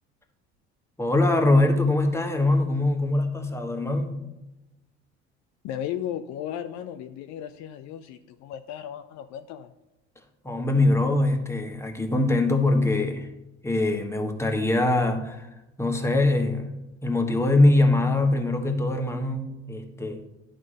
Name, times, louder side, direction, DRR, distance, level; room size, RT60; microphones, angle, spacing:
voice 1, 1.0-4.2 10.4-13.3 13.6-15.5 15.8-16.7 17.0-20.2, left 2 dB, 10° left, 3 dB, 1.4 m, -23 dB
voice 2, 5.6-9.7, left 10 dB, 55° left, 9 dB, 0.5 m, -35 dB
11.0 x 3.7 x 4.9 m, 0.95 s
hypercardioid pair, 60°, 34 cm